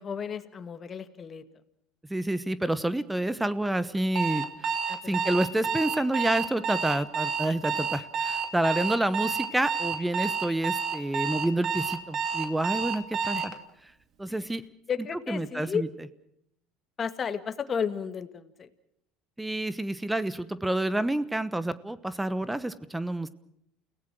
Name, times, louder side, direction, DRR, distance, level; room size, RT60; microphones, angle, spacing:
voice 1, 0.0-1.4 4.9-5.3 13.2-13.4 14.3-14.6 14.9-15.8 17.0-18.7, left 7 dB, 35° left, 10 dB, 1.9 m, -33 dB
voice 2, 2.1-4.8 5.0-13.5 14.2-14.6 15.3-15.9 19.4-23.3, right 1 dB, 10° right, 16 dB, 1.1 m, -28 dB
Alarm, 4.2-13.6, right 6 dB, 50° right, 2.5 m, -29 dB
29.5 x 17.5 x 6.3 m, 0.73 s
supercardioid pair, 90°, 0 cm